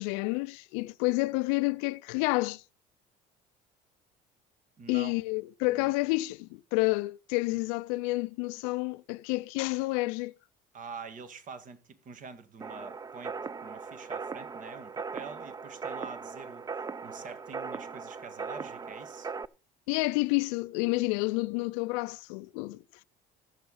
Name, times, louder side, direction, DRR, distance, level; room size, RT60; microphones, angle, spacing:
voice 1, 0.0-2.6 4.9-10.3 19.9-23.0, left 23 dB, 85° left, 0.5 m, -29 dB
voice 2, 4.8-5.1 5.7-5.9 7.5-7.6 10.7-19.3, right 5 dB, 45° right, 1.8 m, -46 dB
sound 1, 12.6-19.5, right 5 dB, 20° right, 0.5 m, -39 dB
16.0 x 7.0 x 4.1 m
supercardioid pair, 90°, 18 cm